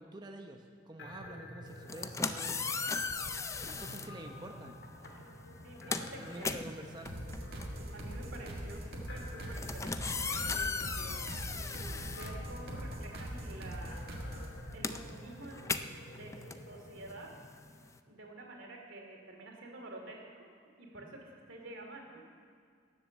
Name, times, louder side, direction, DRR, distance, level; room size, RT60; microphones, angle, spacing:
voice 1, 0.0-2.7 3.6-4.8 5.9-7.1, right 1 dB, 20° right, 3 dB, 0.8 m, -48 dB
sound 1, 1.0-17.2, equal, 60° left, 1.8 m, -50 dB
sound 2, 1.8-4.1 5.0-5.2 5.5-13.1 13.3-18.0, left 4 dB, 15° left, 0.4 m, -38 dB
voice 2, 5.6-6.7 7.9-14.0 14.7-17.3 18.1-20.5 20.8-22.2, right 2 dB, 90° right, 1 dB, 2.7 m, -49 dB
sound 3, 7.0-14.6, equal, 55° right, 2.0 m, -42 dB
17.5 x 7.3 x 7.2 m, 2.1 s
head